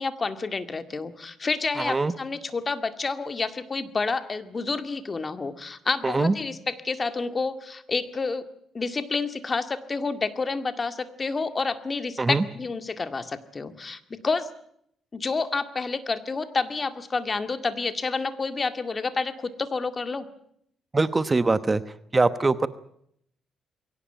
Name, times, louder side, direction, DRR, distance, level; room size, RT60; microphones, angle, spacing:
voice 1, 0.0-8.5 8.7-14.5 15.1-20.3, left 4 dB, 30° left, 10 dB, 2.0 m, -29 dB
voice 2, 1.8-2.1 6.0-6.3 12.2-12.4 20.9-21.8 22.1-22.7, right 3 dB, 25° right, 13 dB, 1.0 m, -22 dB
22.5 x 17.5 x 9.1 m, 0.70 s
cardioid pair, 90°, 0 cm